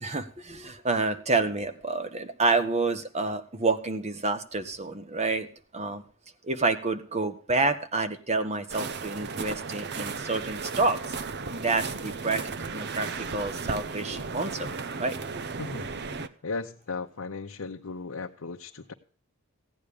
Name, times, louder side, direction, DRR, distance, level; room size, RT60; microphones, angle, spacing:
voice 1, 0.0-6.0 6.4-11.0 11.5-12.4 12.7-14.7 15.0-15.2, right 3 dB, 35° right, 10 dB, 1.3 m, -28 dB
sound 1, 8.7-16.3, right 4 dB, 55° right, 0.8 m, -35 dB
voice 2, 15.6-16.2 16.4-18.9, left 4 dB, 85° left, 2 dB, 0.9 m, -36 dB
16.0 x 9.3 x 5.0 m, 0.43 s
head